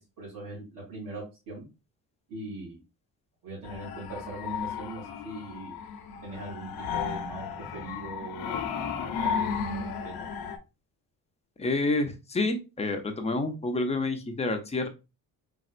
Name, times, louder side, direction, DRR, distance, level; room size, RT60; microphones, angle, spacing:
voice 1, 0.2-1.6 2.3-2.8 3.4-5.8 6.2-10.1, right 2 dB, 60° right, -7 dB, 2.5 m, -41 dB
sound 1, 3.6-10.6, left 6 dB, 70° left, 0.8 m, -34 dB
voice 2, 11.6-14.9, left 2 dB, 15° left, 5 dB, 0.5 m, -28 dB
4.3 x 3.5 x 2.4 m, 0.28 s
cardioid pair, 145°, 37 cm